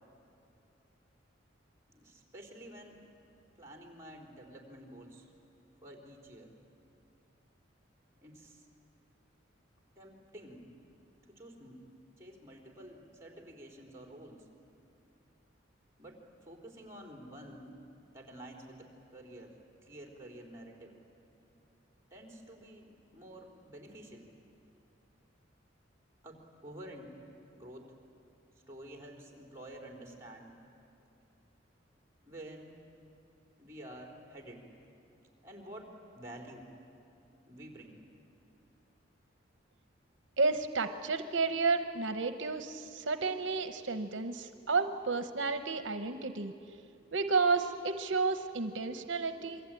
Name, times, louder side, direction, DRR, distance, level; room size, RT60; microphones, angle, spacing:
voice 1, 1.9-3.0 3.6-5.3 5.8-6.5 8.2-8.7 10.0-10.7 11.3-11.8 12.2-14.4 16.0-17.7 18.1-19.5 19.8-21.0 22.1-24.3 26.2-27.2 27.5-27.9 28.7-30.5 32.2-32.8 33.6-34.7 35.4-36.7 37.5-38.0, right 1 dB, 15° right, 1 dB, 3.9 m, -50 dB
voice 2, 40.4-46.5 47.1-49.6, right 4 dB, 75° right, 8 dB, 0.9 m, -31 dB
27.5 x 23.0 x 9.1 m, 2.6 s
head